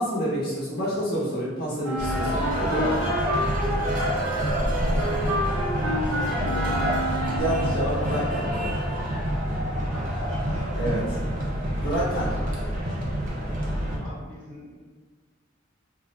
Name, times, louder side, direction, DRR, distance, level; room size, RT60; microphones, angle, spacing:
voice 1, 0.0-3.0 7.3-8.8 10.7-11.2 11.8-12.3, right 1 dB, 50° left, -8 dB, 0.6 m, -28 dB
Wind instrument woodwind instrument, 1.8-7.8, equal, 85° right, 0.6 m, -30 dB
sound 1, 2.0-14.0, equal, 40° right, 0.7 m, -27 dB
voice 2, 3.3-5.2 5.7-6.9 9.9-10.4 12.1-12.4 13.9-14.8, left 1 dB, 5° left, -12 dB, 0.6 m, -43 dB
2.3 x 2.0 x 3.8 m, 1.4 s
head